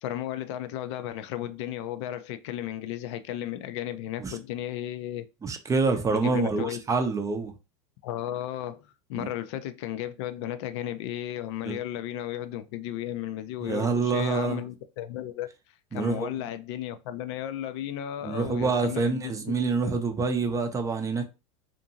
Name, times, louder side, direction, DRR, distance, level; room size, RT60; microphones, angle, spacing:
voice 1, 0.0-5.2 6.1-6.8 8.0-15.5 15.9-19.6, left 12 dB, 65° left, 0.4 m, -34 dB
voice 2, 5.4-7.5 9.1-9.3 11.6-11.8 13.6-14.6 15.9-16.3 18.2-21.2, right 4 dB, 20° right, 0.5 m, -27 dB
2.7 x 2.5 x 2.6 m
hypercardioid pair, 95°, 16 cm